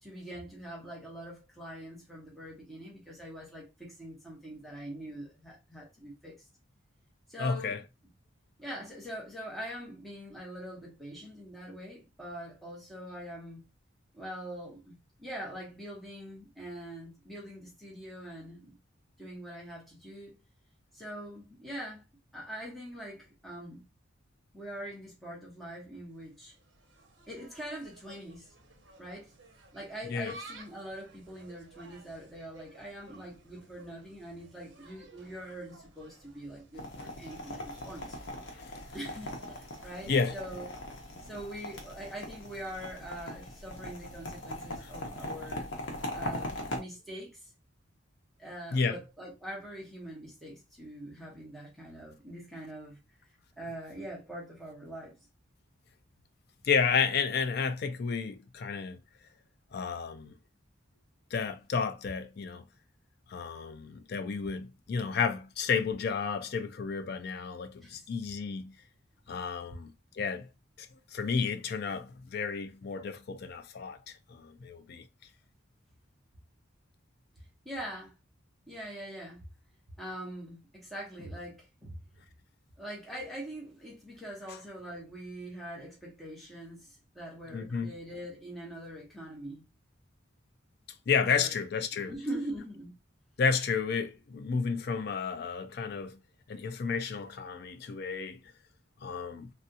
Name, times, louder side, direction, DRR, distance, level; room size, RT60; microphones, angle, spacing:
voice 1, 0.0-6.4 7.3-7.8 8.6-13.6 14.1-18.7 19.2-20.4 20.9-22.0 22.3-23.8 24.5-26.5 27.3-28.5 29.0-29.3 29.7-38.2 38.9-40.7 41.2-45.7 46.1-47.5 48.4-53.0 53.6-55.1 67.8-68.0 77.6-78.1 78.7-79.4 80.0-82.0 82.8-89.6 91.3-91.5 91.9-92.9, right 1 dB, ahead, 1.0 m, -43 dB
voice 2, 7.4-7.8 30.1-30.3 38.5-38.7 40.1-40.4 48.7-49.0 56.6-59.0 59.7-60.3 61.3-62.6 63.3-68.7 69.3-70.5 70.8-70.9 71.1-75.0 87.5-87.9 91.1-92.1 93.4-96.2 96.5-98.4 99.0-99.5, left 5 dB, 50° left, 0.4 m, -31 dB
Insect, 26.1-39.9, right 2 dB, 60° right, 0.8 m, -55 dB
sound 1, 36.7-46.8, left 1 dB, 70° left, 0.9 m, -40 dB
3.4 x 2.4 x 2.7 m
head